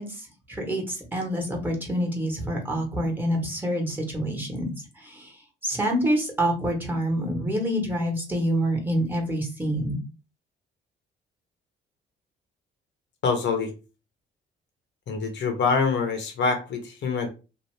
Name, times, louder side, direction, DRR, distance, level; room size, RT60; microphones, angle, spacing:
voice 1, 0.0-4.6 5.0-5.3 5.6-10.0, equal, 10° right, 1 dB, 1.2 m, -27 dB
voice 2, 13.2-13.7 15.1-17.3, left 4 dB, 65° left, 5 dB, 0.9 m, -25 dB
2.7 x 2.3 x 3.2 m, 0.31 s
cardioid pair, 90°, 20 cm